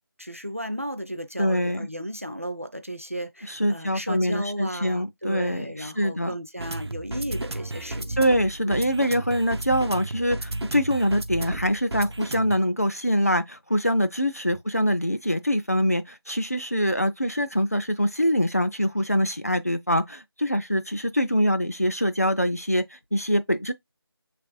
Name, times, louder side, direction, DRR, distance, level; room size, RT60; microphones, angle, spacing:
voice 1, 0.2-8.3 8.7-8.9, equal, 35° right, 0.4 m, -35 dB
voice 2, 1.4-1.9 3.5-6.4 8.2-23.7, equal, 40° left, 0.4 m, -24 dB
sound 1, 6.6-12.6, right 2 dB, 90° right, 0.7 m, -33 dB
6.8 x 3.3 x 2.3 m
figure-of-eight pair, 180°, 13 cm